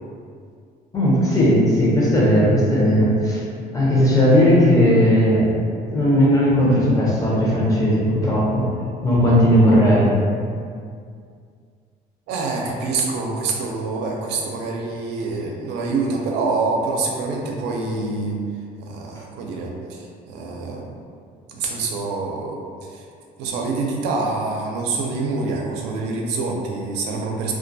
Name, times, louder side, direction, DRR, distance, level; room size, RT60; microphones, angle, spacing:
voice 1, 0.9-3.4 3.7-5.5 5.9-8.7 9.0-10.1, equal, 20° left, -6 dB, 0.7 m, -16 dB
voice 2, 12.3-18.4 18.8-21.0 21.5-23.1 23.4-27.5, right 3 dB, 90° right, -1 dB, 0.4 m, -26 dB
2.3 x 2.2 x 2.6 m, 2.2 s
cardioid pair, 110°, 17 cm